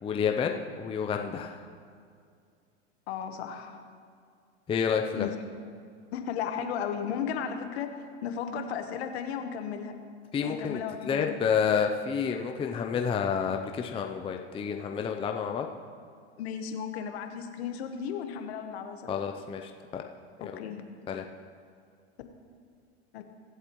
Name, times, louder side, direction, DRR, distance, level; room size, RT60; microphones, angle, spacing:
voice 1, 0.0-1.7 4.7-5.3 10.3-15.7 19.1-20.0 20.4-20.6 21.1-21.2, left 7 dB, 15° left, 4 dB, 0.5 m, -29 dB
voice 2, 3.1-3.8 5.2-5.3 6.1-7.9 8.2-9.9 10.4-11.4 16.4-19.0 20.4-20.8 23.1-23.2, left 7 dB, 65° left, 7 dB, 1.3 m, -34 dB
23.5 x 8.0 x 3.1 m, 2.2 s
hypercardioid pair, 105°, 34 cm